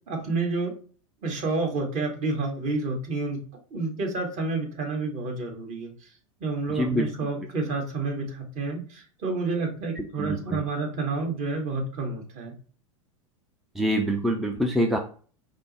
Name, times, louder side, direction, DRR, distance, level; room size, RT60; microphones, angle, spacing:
voice 1, 0.1-0.7 1.2-3.4 3.7-6.1 6.4-12.5, right 3 dB, 40° right, 1 dB, 1.7 m, -29 dB
voice 2, 6.7-7.3 10.0-10.6 13.7-15.0, equal, ahead, 2 dB, 0.5 m, -26 dB
5.1 x 2.1 x 4.1 m, 0.41 s
hypercardioid pair, 95°, 18 cm